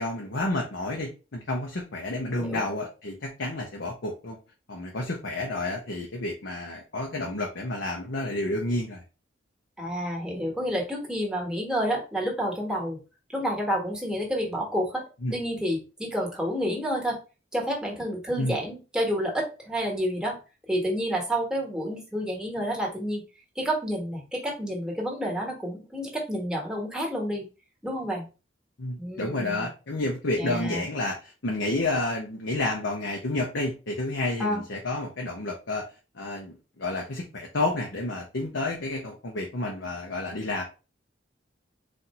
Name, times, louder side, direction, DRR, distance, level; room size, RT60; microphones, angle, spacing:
voice 1, 0.0-4.4 4.7-9.0 15.2-15.4 18.4-18.6 28.8-35.8 36.1-40.6, left 2 dB, 75° left, 0 dB, 0.8 m, -30 dB
voice 2, 9.8-13.0 13.3-15.0 15.3-17.2 17.5-20.4 20.7-23.2 23.5-27.4 27.8-28.2 29.0-29.7 30.4-30.8 34.4-34.6, equal, 5° right, -1 dB, 1.4 m, -29 dB
4.2 x 2.6 x 4.2 m, 0.32 s
head